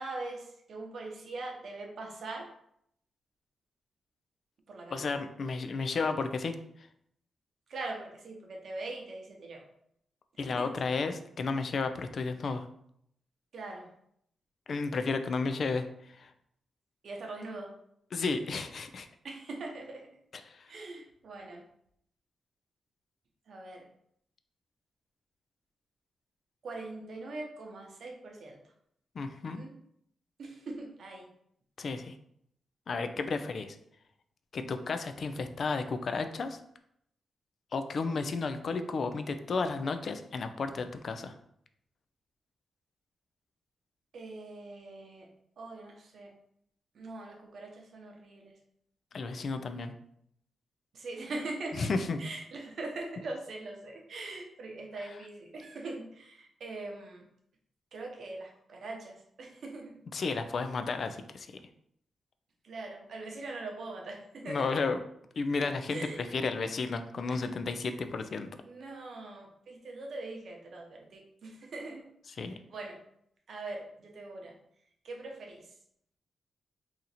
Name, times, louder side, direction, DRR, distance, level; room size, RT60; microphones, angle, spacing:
voice 1, 0.0-2.5 4.7-5.2 7.7-9.6 10.5-10.7 13.5-13.9 17.0-17.7 19.2-20.1 20.7-21.6 23.5-23.9 26.6-28.6 29.5-29.7 30.4-31.3 38.0-38.2 44.1-45.3 45.6-46.3 46.9-48.6 50.9-51.9 52.2-57.2 57.9-60.0 62.6-64.7 65.9-66.4 67.3-67.5 68.6-72.1 72.4-73.0 73.5-74.5 75.0-75.7, right 2 dB, 65° right, 1 dB, 0.7 m, -42 dB
voice 2, 4.9-6.6 10.4-12.7 14.7-15.9 16.2-16.3 18.1-19.1 20.5-20.7 29.2-29.6 31.8-32.2 32.9-33.8 34.5-36.6 37.7-41.3 49.1-49.9 51.8-52.2 60.1-61.6 64.4-65.0 65.4-68.5 72.4-72.5, left 4 dB, 55° left, 8 dB, 0.3 m, -32 dB
2.8 x 2.5 x 4.0 m, 0.72 s
cardioid pair, 105°, 0 cm